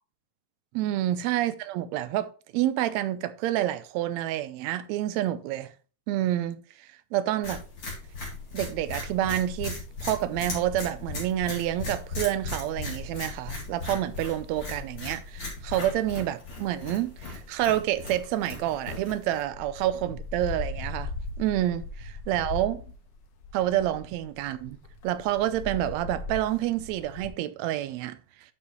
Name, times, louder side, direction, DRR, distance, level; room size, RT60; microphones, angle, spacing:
voice 1, 0.7-5.7 6.1-6.6 7.1-7.6 8.5-9.8 10.0-22.8 23.5-24.8 25.0-28.2, right 13 dB, 75° right, 1.8 m, -28 dB
sound 1, 7.4-19.4, left 3 dB, 40° left, 3.4 m, -37 dB
sound 2, 12.9-18.8 19.3-27.3, left 3 dB, 65° left, 1.8 m, -40 dB
9.7 x 6.0 x 3.0 m
omnidirectional pair, 3.4 m